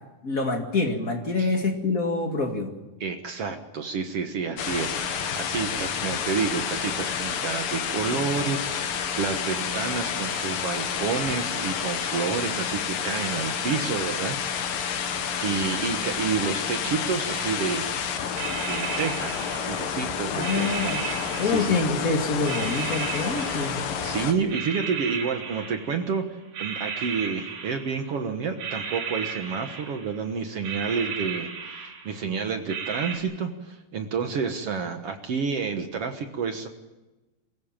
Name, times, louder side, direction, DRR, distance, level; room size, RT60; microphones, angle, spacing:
voice 1, 0.2-2.7 20.3-21.0 21.4-23.8, left 3 dB, 30° left, 3 dB, 2.1 m, -26 dB
voice 2, 3.0-14.4 14.7-15.1 15.4-17.9 18.7-21.8 24.0-36.7, right 5 dB, 55° right, 6 dB, 1.8 m, -29 dB
sound 1, 4.6-24.3, left 7 dB, 75° left, 3.2 m, -29 dB
sound 2, 17.3-18.0 18.4-20.0 20.4-22.1 22.4-24.1 24.5-26.2 26.5-28.2 28.6-30.3 30.6-32.3 32.7-33.2, right 6 dB, 90° right, 5.3 m, -35 dB
23.5 x 16.0 x 8.9 m, 1.1 s
omnidirectional pair, 4.1 m